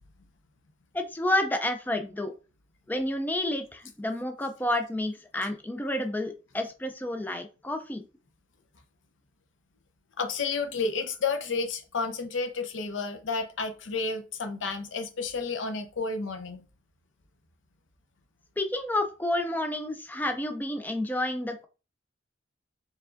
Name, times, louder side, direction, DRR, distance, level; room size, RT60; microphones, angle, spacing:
voice 1, 0.9-2.3 2.9-8.0 18.6-21.7, left 1 dB, 10° left, 0.4 m, -30 dB
voice 2, 10.2-16.6, left 4 dB, 85° left, 0.7 m, -31 dB
4.5 x 3.4 x 2.5 m
head